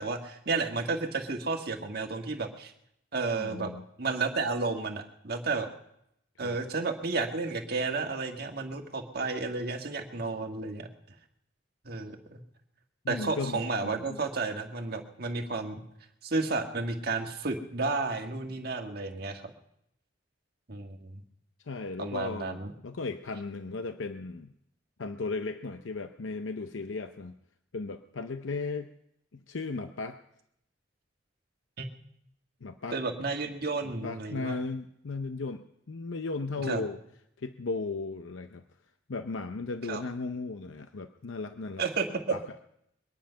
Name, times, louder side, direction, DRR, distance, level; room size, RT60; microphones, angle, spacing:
voice 1, 0.0-2.7 3.1-3.7 4.0-5.7 6.4-10.9 11.8-12.4 13.1-15.8 16.2-19.5 20.7-21.2 22.0-22.7 31.8-31.9 32.9-34.6 36.7-36.8 39.9-40.0 41.8-42.4, right 3 dB, 55° right, 3 dB, 1.6 m, -32 dB
voice 2, 3.4-3.8 6.4-6.6 13.0-14.2 21.7-24.5 25.0-27.4 27.7-28.9 29.3-30.2 32.6-33.0 33.8-37.0 37.4-38.6 39.1-41.8 42.3-42.4, left 3 dB, 90° left, 8 dB, 0.7 m, -36 dB
23.0 x 10.5 x 5.6 m, 0.78 s
head